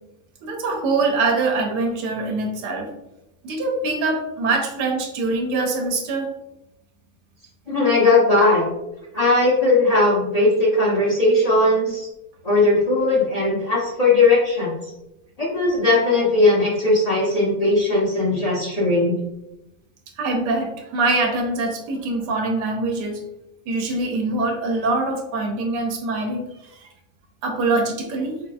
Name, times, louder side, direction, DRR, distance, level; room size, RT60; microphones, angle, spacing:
voice 1, 0.4-2.9 3.4-6.3 20.2-23.2 23.7-26.9 27.4-28.4, right 3 dB, 90° right, 2 dB, 1.3 m, -24 dB
voice 2, 7.7-8.7 9.1-12.1 12.4-14.7 15.4-19.2, left 2 dB, 40° left, -6 dB, 0.5 m, -18 dB
3.7 x 2.6 x 2.3 m, 0.89 s
omnidirectional pair, 1.7 m